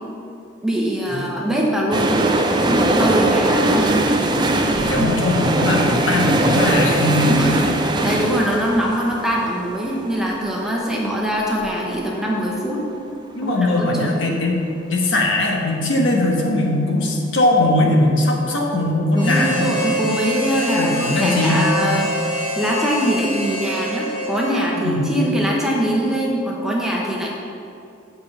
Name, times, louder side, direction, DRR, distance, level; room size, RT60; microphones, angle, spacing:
voice 1, 0.6-2.1 2.5-3.9 5.0-5.1 7.2-7.5 8.0-12.8 13.4-14.1 19.1-22.1 22.6-27.3, equal, 5° right, -3 dB, 0.8 m, -22 dB
sound 1, 1.9-11.7 12.0-12.1, right 1 dB, 20° right, 0.4 m, -20 dB
voice 2, 4.7-7.3 13.3-14.5 14.9-19.7 20.6-21.6 24.8-25.0, left 2 dB, 75° left, -1 dB, 1.3 m, -20 dB
Harmonica, 19.1-24.9, equal, 20° left, 1.6 m, -26 dB
7.6 x 4.6 x 6.8 m, 2.5 s
head